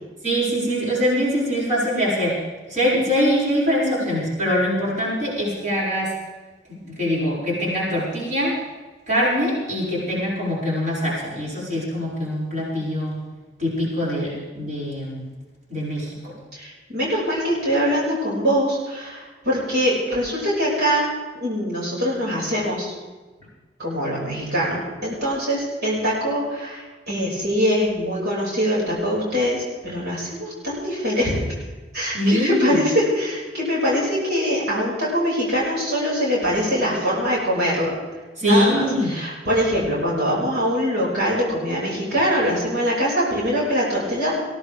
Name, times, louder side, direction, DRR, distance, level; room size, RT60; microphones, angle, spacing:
voice 1, 0.2-2.4 2.7-6.1 6.7-8.6 9.1-13.2 13.6-15.3 15.7-16.3 32.1-32.8 38.4-39.2, equal, 45° right, -6 dB, 6.5 m, -23 dB
voice 2, 16.5-21.0 21.3-22.9 23.8-31.4 31.9-37.9 38.4-38.8 39.1-44.3, equal, 65° right, -6 dB, 6.1 m, -23 dB
22.5 x 16.5 x 3.6 m, 1.3 s
head